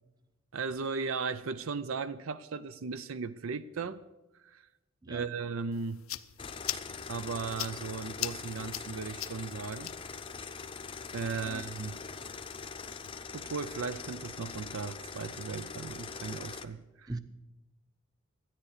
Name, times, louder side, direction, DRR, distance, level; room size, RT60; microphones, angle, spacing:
voice 1, 0.5-4.0 4.4-4.6 5.1-6.0 7.1-9.9 11.1-12.0 13.3-17.1, right 5 dB, 85° right, 0.6 m, -37 dB
voice 2, 5.0-5.3 11.4-11.7 17.1-17.2, right 2 dB, 20° right, 0.7 m, -39 dB
sound 1, 5.7-13.1, left 14 dB, 85° left, 0.5 m, -43 dB
sound 2, 6.4-16.7, left 5 dB, 25° left, 0.6 m, -42 dB
13.0 x 9.8 x 6.6 m
head